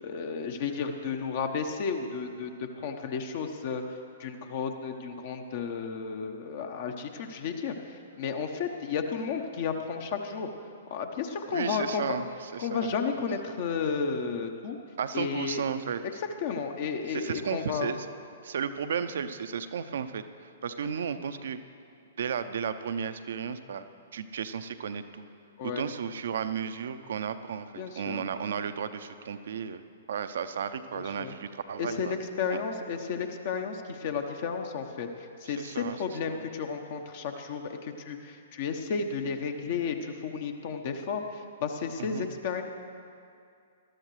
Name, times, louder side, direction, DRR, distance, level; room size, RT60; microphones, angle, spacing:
voice 1, 0.0-2.5 2.8-3.8 4.2-10.5 10.9-12.1 12.6-14.8 15.1-15.6 16.0-16.1 16.4-17.9 25.6-25.8 27.8-28.2 30.9-31.3 31.8-42.6, left 6 dB, 45° left, 5 dB, 1.0 m, -33 dB
voice 2, 11.5-12.9 15.0-16.0 17.1-18.1 18.4-21.6 22.2-23.9 24.1-25.3 25.6-29.8 30.1-32.2 32.5-32.6 35.4-36.5 42.0-42.3, right 7 dB, 60° right, 11 dB, 0.6 m, -34 dB
19.5 x 13.0 x 3.2 m, 2.5 s
figure-of-eight pair, 115°, 0 cm